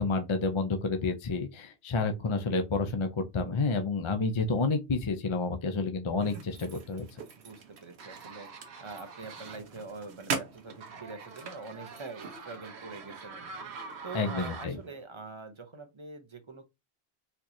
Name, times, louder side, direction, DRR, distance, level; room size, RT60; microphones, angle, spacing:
voice 1, 0.0-7.1 14.1-14.8, left 3 dB, 40° left, 0.4 m, -29 dB
sound 1, 6.2-15.0, right 5 dB, 70° right, 1.0 m, -41 dB
voice 2, 7.4-16.6, right 3 dB, 30° right, 0.6 m, -45 dB
4.3 x 2.9 x 2.6 m
omnidirectional pair, 1.2 m